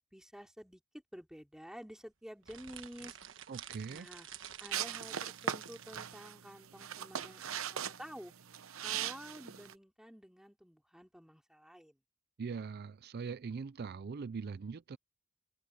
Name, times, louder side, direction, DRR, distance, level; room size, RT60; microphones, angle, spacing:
voice 1, 0.1-0.8 1.1-3.2 3.9-4.3 4.6-8.3 8.8-12.0, equal, 5° right, 3.2 m, -51 dB
sound 1, 2.4-6.1, right 10 dB, 65° right, 1.3 m, -50 dB
voice 2, 3.5-4.1 12.4-15.0, right 5 dB, 50° right, 0.4 m, -41 dB
sound 2, 4.7-9.7, right 9 dB, 90° right, 0.9 m, -39 dB
head